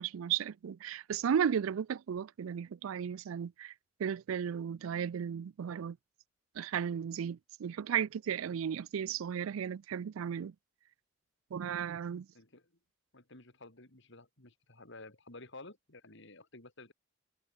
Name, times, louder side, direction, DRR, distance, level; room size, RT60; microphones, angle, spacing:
voice 1, 0.0-3.7 4.0-6.0 6.6-10.5 11.5-12.3, right 8 dB, 90° right, 0.4 m, -35 dB
voice 2, 12.3-12.7 13.1-16.9, left 2 dB, 65° left, 5.0 m, -52 dB
head